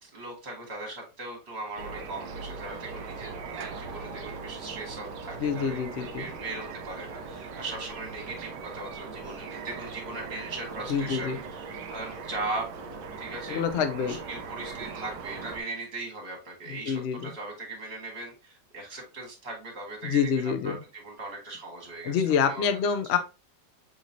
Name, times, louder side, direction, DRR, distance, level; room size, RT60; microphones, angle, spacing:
voice 1, 0.0-12.7 13.2-13.6 14.0-22.8 23.1-23.2, right 2 dB, 35° right, 0 dB, 1.8 m, -39 dB
sound 1, 1.8-15.6, right 4 dB, 75° right, 1.2 m, -40 dB
voice 2, 5.4-6.3 10.9-11.4 13.5-14.2 16.7-17.3 20.0-20.8 22.0-23.2, left 7 dB, 90° left, 9 dB, 0.5 m, -27 dB
6.5 x 3.0 x 2.6 m, 0.30 s
omnidirectional pair, 1.9 m